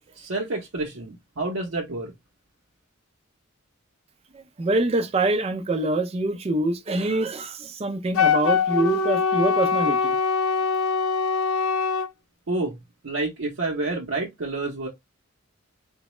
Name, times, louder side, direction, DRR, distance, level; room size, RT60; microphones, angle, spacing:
voice 1, 0.2-2.1 12.5-12.8 13.0-14.9, right 2 dB, 65° right, 0.7 m, -29 dB
voice 2, 4.3-10.2, right 2 dB, 30° right, 0.4 m, -25 dB
Wind instrument woodwind instrument, 8.1-12.1, left 5 dB, 90° left, 0.5 m, -23 dB
3.9 x 2.1 x 3.0 m
head